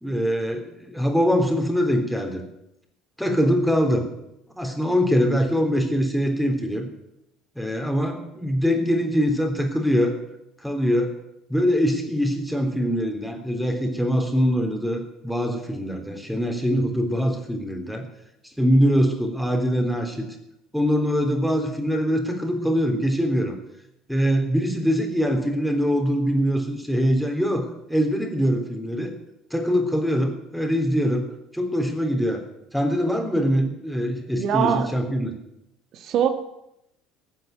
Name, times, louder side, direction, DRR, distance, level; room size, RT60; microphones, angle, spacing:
voice 1, 0.0-2.4 3.2-4.0 4.6-6.9 7.6-10.2 10.6-11.1 11.5-18.0 18.6-20.2 20.7-23.5 24.1-29.1 29.5-31.3 31.5-32.4 32.7-35.4, equal, ahead, 4 dB, 3.5 m, -23 dB
voice 2, 34.4-34.9 35.9-36.3, right 8 dB, 45° right, 8 dB, 1.8 m, -22 dB
15.5 x 9.4 x 9.4 m, 0.83 s
figure-of-eight pair, 60°, 0 cm